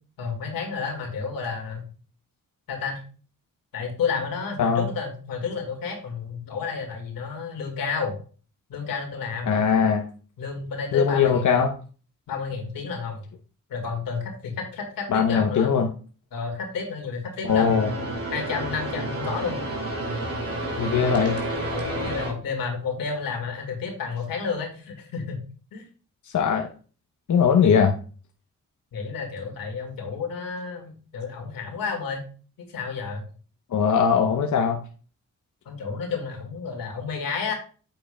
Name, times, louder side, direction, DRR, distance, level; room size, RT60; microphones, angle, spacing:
voice 1, 0.2-1.9 2.7-3.0 3.7-8.2 8.7-9.6 10.4-11.5 12.3-13.2 13.7-15.7 16.3-18.0 18.3-19.6 21.7-25.4 25.7-25.8 28.9-32.2 32.7-33.3 35.7-37.5, left 5 dB, 90° left, 3 dB, 2.0 m, -31 dB
voice 2, 4.6-4.9 9.5-10.0 10.9-11.7 15.1-15.9 17.5-17.9 20.8-21.4 26.3-26.7 27.3-27.9 33.7-34.8, left 6 dB, 60° left, 4 dB, 0.9 m, -20 dB
sound 1, 17.5-22.3, right 1 dB, 45° right, 2.6 m, -30 dB
8.5 x 7.8 x 2.2 m, 0.39 s
cardioid pair, 60°, 33 cm